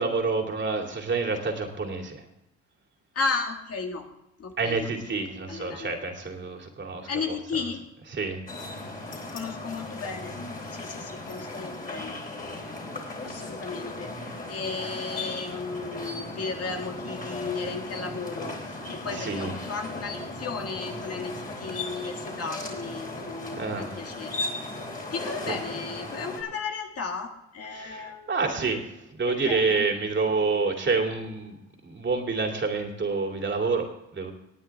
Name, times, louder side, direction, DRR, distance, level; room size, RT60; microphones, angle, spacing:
voice 1, 0.0-2.2 4.6-7.4 8.1-8.4 19.1-19.5 23.5-23.9 27.7-28.8 29.1-34.3, right 4 dB, 40° right, 2 dB, 2.7 m, -28 dB
voice 2, 3.1-4.1 4.4-4.9 5.5-5.9 7.1-7.8 9.3-10.4 10.7-12.2 13.2-24.4 25.1-28.3 29.3-29.9, left 4 dB, 50° left, 3 dB, 2.0 m, -34 dB
sound 1, 8.5-26.4, left 2 dB, 30° left, 3.7 m, -37 dB
19.0 x 9.1 x 3.6 m, 0.86 s
cardioid pair, 90°, 30 cm